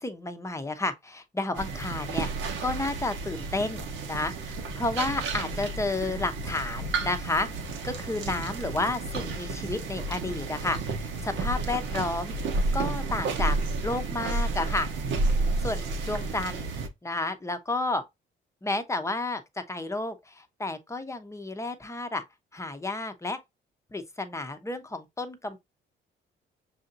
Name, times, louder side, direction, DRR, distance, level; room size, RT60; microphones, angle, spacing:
voice 1, 0.0-2.3 2.6-7.5 7.8-12.4 12.7-13.6 13.8-14.9 15.6-16.7 17.0-18.0 18.6-19.4 19.7-22.2 22.5-23.4 23.9-25.6, left 2 dB, 15° left, 0.7 m, -31 dB
sound 1, 1.5-16.9, right 3 dB, 75° right, 0.9 m, -31 dB
6.3 x 2.7 x 2.6 m
cardioid pair, 90°, 20 cm